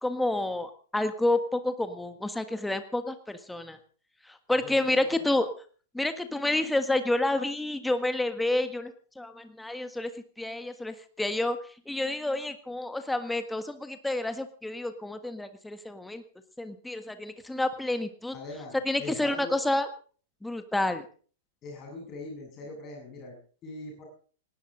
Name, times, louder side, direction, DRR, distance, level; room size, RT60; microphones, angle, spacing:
voice 1, 0.0-3.8 4.3-5.5 5.9-10.1 10.4-11.6 11.9-16.2 16.6-18.3 18.8-19.9 20.4-21.1, left 2 dB, 5° left, 9 dB, 1.6 m, -29 dB
voice 2, 4.6-5.4 18.3-19.6 21.6-24.0, left 2 dB, 30° left, 0 dB, 7.9 m, -42 dB
19.0 x 18.5 x 3.9 m, 0.43 s
figure-of-eight pair, 100°, 0 cm